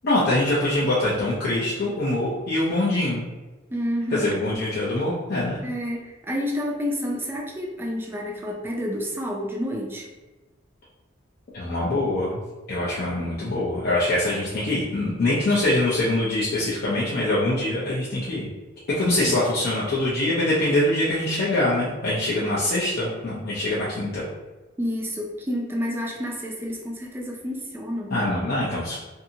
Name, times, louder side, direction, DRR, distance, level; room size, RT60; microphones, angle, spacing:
voice 1, 0.0-3.3 4.1-5.6 11.5-12.4 12.7-18.5 18.9-24.2 28.1-29.0, left 1 dB, 50° left, -8 dB, 0.6 m, -24 dB
voice 2, 3.7-4.3 5.6-10.1 19.3-19.4 24.8-28.1, equal, 10° right, -1 dB, 0.4 m, -29 dB
2.6 x 2.5 x 2.7 m, 1.2 s
head